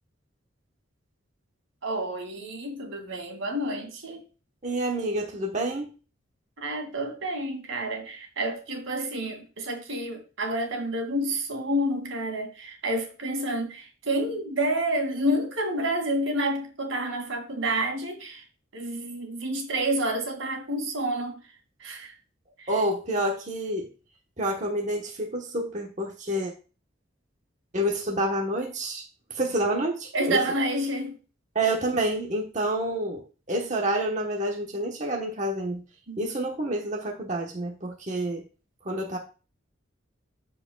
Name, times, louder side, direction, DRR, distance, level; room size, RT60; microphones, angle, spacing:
voice 1, 1.8-4.2 6.6-18.4 18.7-21.4 21.8-22.1 22.6-22.7 30.1-31.2 36.1-36.2, right 1 dB, 90° right, 2.4 m, -29 dB
voice 2, 4.6-5.9 22.7-23.9 24.4-26.5 27.7-29.0 29.3-30.4 31.5-35.8 36.2-38.5 38.8-39.2, right 1 dB, 40° right, 1.2 m, -28 dB
13.0 x 4.9 x 2.3 m
head